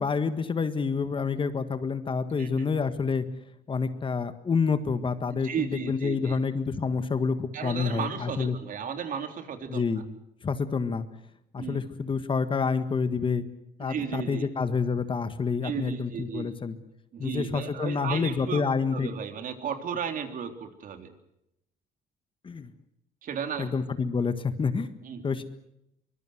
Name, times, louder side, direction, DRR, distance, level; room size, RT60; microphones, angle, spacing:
voice 1, 0.0-3.3 3.7-8.6 9.7-10.1 10.4-11.1 11.5-13.5 13.8-16.8 17.2-19.1 22.4-22.7 23.6-24.9 25.2-25.4, left 5 dB, 30° left, 11 dB, 1.7 m, -28 dB
voice 2, 5.4-6.4 7.5-9.8 11.6-11.8 13.8-14.5 15.6-16.6 17.1-18.6 18.9-21.1 23.2-23.7 25.0-25.2, right 7 dB, 55° right, 6 dB, 3.5 m, -34 dB
24.5 x 22.0 x 7.9 m, 0.81 s
cardioid pair, 110°, 17 cm